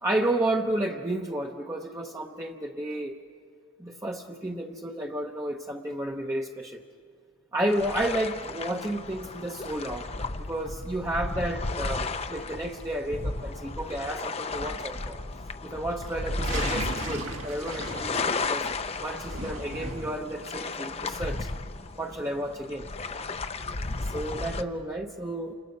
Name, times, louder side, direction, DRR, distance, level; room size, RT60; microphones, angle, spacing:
voice 1, 0.0-3.1 3.8-6.8 7.5-10.1 10.5-15.2 15.6-18.7 19.0-21.5 22.0-22.9 24.0-25.5, right 1 dB, 15° right, 0 dB, 0.7 m, -31 dB
sound 1, 7.7-24.6, left 3 dB, 30° left, 0.6 m, -34 dB
sound 2, 16.1-18.7 19.1-20.3, right 1 dB, 80° right, 2.2 m, -34 dB
28.5 x 27.5 x 5.5 m, 2.3 s
head